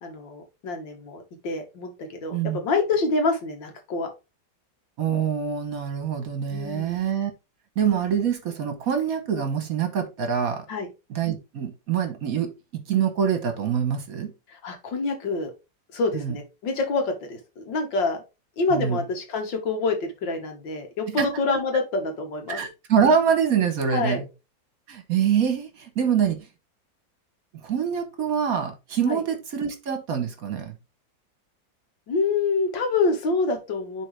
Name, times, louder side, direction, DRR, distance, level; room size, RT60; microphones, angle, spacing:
voice 1, 0.0-4.1 6.5-7.0 10.7-10.9 14.5-15.5 15.9-18.2 18.6-22.6 23.9-24.2 29.0-29.2 32.1-34.1, left 3 dB, 75° left, 2.2 m, -27 dB
voice 2, 5.0-7.3 7.8-10.6 11.1-14.3 16.1-16.3 18.7-19.0 21.2-21.3 22.5-24.2 24.9-26.4 27.6-30.7, right 7 dB, 55° right, 1.3 m, -25 dB
9.8 x 3.9 x 3.3 m
omnidirectional pair, 2.1 m